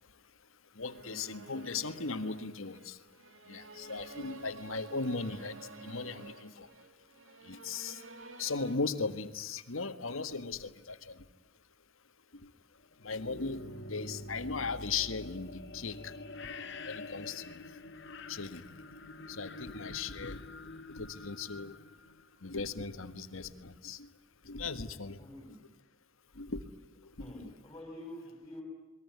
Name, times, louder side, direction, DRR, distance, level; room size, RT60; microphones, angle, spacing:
voice 1, 0.8-3.0 3.5-5.6 5.8-6.7 7.4-8.0 8.4-11.2 12.4-12.5 13.0-16.1 16.4-16.5 16.9-17.6 18.3-18.7 19.3-20.4 21.0-21.8 22.4-24.1 24.5-25.2 26.4-26.6 27.2-27.5, left 4 dB, 85° left, 10 dB, 1.7 m, -38 dB
sound 1, 0.8-8.8, right 3 dB, 70° right, 2.6 m, -51 dB
sound 2, 13.0-22.9, left 2 dB, 60° left, 2.0 m, -46 dB
voice 2, 25.2-25.6 27.2-28.6, left 1 dB, 15° left, 1 dB, 6.1 m, -47 dB
28.5 x 21.0 x 9.6 m, 1.2 s
head